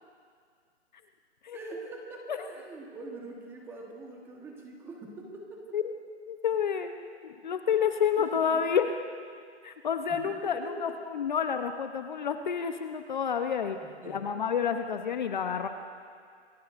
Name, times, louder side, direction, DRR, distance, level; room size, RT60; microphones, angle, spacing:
voice 1, 1.5-5.8 7.4-7.6 8.2-8.6 10.1-11.0 13.8-14.3, right 2 dB, 5° right, 0 dB, 1.1 m, -44 dB
voice 2, 6.3-6.9 7.2-8.9 9.6-13.8 14.0-15.7, left 7 dB, 40° left, 8 dB, 0.7 m, -29 dB
26.5 x 21.0 x 2.5 m, 2.1 s
hypercardioid pair, 160°, 35 cm